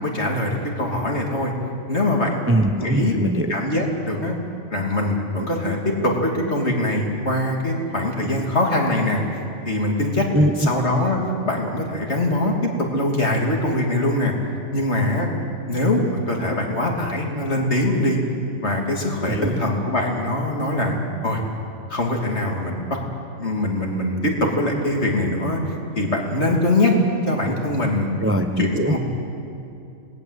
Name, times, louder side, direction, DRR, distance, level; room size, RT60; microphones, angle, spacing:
voice 1, 0.0-1.5 1.9-2.4 2.8-3.1 3.5-4.3 4.7-9.2 9.6-10.3 10.6-14.3 14.7-15.3 15.7-18.2 18.6-21.4 21.9-23.0 23.4-25.6 26.0-26.9 27.3-28.1 28.6-29.0, left 1 dB, 50° left, 0 dB, 3.3 m, -22 dB
voice 2, 2.5-3.5 10.3-10.7 19.3-19.5 28.2-29.0, right 1 dB, 10° right, 5 dB, 0.9 m, -21 dB
27.0 x 19.5 x 8.3 m, 2.6 s
omnidirectional pair, 1.5 m